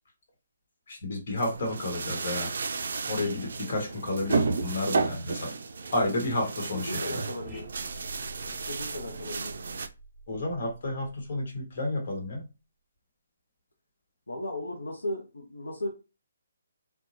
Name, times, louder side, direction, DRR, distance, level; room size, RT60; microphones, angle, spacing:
voice 1, 0.9-2.5 3.1-5.5 5.9-7.2 10.3-12.4, left 2 dB, 55° left, 1 dB, 1.2 m, -31 dB
sound 1, 1.4-9.9, right 4 dB, 60° right, 0.3 m, -33 dB
voice 2, 6.7-7.7 8.5-9.6 14.3-15.9, left 1 dB, 85° left, -1 dB, 0.7 m, -36 dB
sound 2, 7.4-12.1, right 2 dB, ahead, 0.7 m, -49 dB
2.8 x 2.2 x 2.7 m, 0.30 s
figure-of-eight pair, 140°, 0 cm